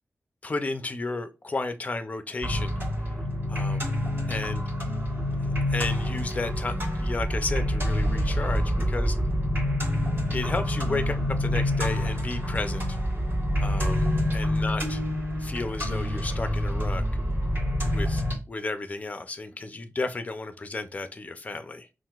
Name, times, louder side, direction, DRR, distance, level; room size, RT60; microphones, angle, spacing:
voice 1, 0.4-2.7 3.1-3.2 3.5-3.9 4.3-4.7 5.7-9.2 10.3-13.0 13.6-15.0 15.4-17.0 17.8-21.9, left 3 dB, 30° left, 0.4 m, -33 dB
sound 1, 2.4-18.3, left 1 dB, 45° right, 1.4 m, -27 dB
5.6 x 2.5 x 2.3 m
wide cardioid pair, 140°, 5 cm